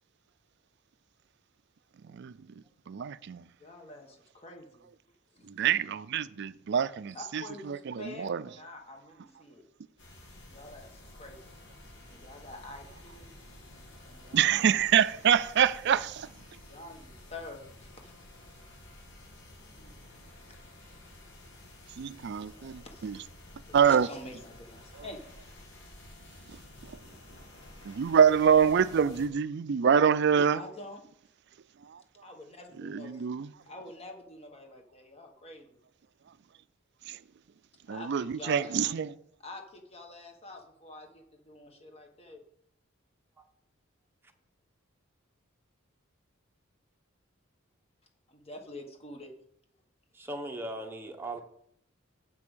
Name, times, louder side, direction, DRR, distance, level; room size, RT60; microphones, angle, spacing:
voice 1, 2.9-3.4 5.5-8.4 14.3-16.3 22.0-23.2 23.7-24.1 26.5-26.6 27.8-30.6 31.9-32.0 32.8-33.5 37.1-37.2 37.9-39.1, right 7 dB, 55° right, 0.4 m, -25 dB
voice 2, 3.6-4.9 5.3-5.5 7.1-9.6 10.5-13.3 14.1-14.8 16.7-18.1 19.8-19.9 20.5-20.6 22.5-23.2 23.7-25.2 30.4-31.0 32.2-33.2 33.7-35.7 37.9-38.8 39.4-42.4 48.3-49.3, left 1 dB, 30° left, 1.4 m, -47 dB
sound 1, 10.0-29.3, left 1 dB, 55° left, 2.2 m, -51 dB
voice 3, 50.1-51.4, right 1 dB, 10° right, 0.9 m, -38 dB
7.6 x 6.0 x 6.2 m
head